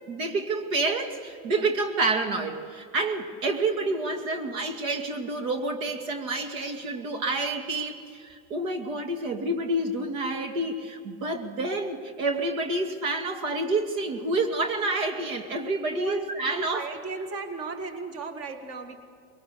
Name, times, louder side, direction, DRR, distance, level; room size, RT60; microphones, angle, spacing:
voice 1, 0.1-16.9, right 2 dB, 85° right, 5 dB, 2.5 m, -28 dB
voice 2, 15.8-16.3 16.6-19.0, right 3 dB, 35° right, 7 dB, 1.8 m, -35 dB
22.0 x 19.5 x 6.9 m, 2.3 s
supercardioid pair, 125°, 40 cm